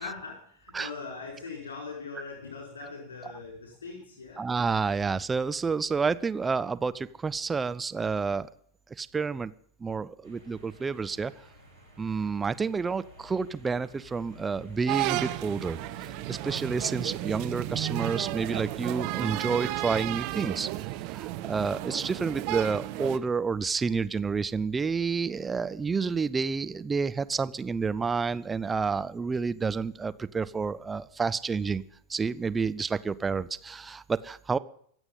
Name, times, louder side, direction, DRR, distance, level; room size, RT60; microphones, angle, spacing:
voice 1, 0.0-4.5, left 4 dB, 65° left, 1 dB, 5.2 m, -41 dB
voice 2, 4.4-8.5 9.0-9.5 9.8-11.3 12.0-15.8 16.3-20.7 21.1-31.8 32.1-34.6, right 5 dB, 15° right, 13 dB, 0.6 m, -29 dB
sound 1, 10.2-20.5, left 2 dB, 80° right, 8.0 m, -53 dB
sound 2, 14.9-23.2, right 17 dB, 45° right, 1.0 m, -33 dB
24.0 x 8.1 x 5.5 m, 0.63 s
figure-of-eight pair, 90°, 0 cm